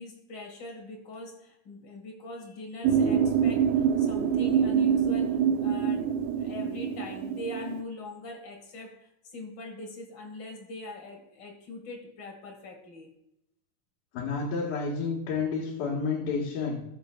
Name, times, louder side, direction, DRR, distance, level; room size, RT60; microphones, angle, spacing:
voice 1, 0.0-6.1 6.3-13.1, left 2 dB, 50° left, 3 dB, 1.4 m, -42 dB
sound 1, 2.8-7.8, right 7 dB, 80° right, 2.4 m, -25 dB
voice 2, 14.1-16.8, left 5 dB, 80° left, -4 dB, 3.3 m, -30 dB
18.5 x 6.6 x 2.3 m, 0.82 s
omnidirectional pair, 4.1 m